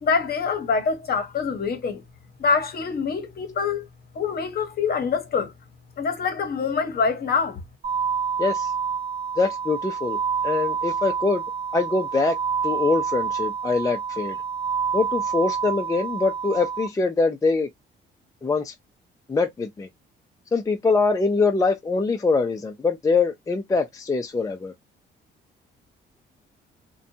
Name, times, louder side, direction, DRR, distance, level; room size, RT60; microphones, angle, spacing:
voice 1, 0.0-2.0 2.4-3.9 4.1-5.5 6.0-7.6, left 5 dB, 50° left, 0.8 m, -25 dB
sound 1, 7.8-16.9, right 6 dB, 50° right, 1.1 m, -28 dB
voice 2, 8.4-8.7 9.4-10.2 10.4-11.4 11.7-12.4 12.6-14.4 14.9-17.7 18.4-18.7 19.3-19.9 20.5-24.7, left 4 dB, 15° left, 0.4 m, -23 dB
2.6 x 2.2 x 2.6 m
cardioid pair, 90°, 20 cm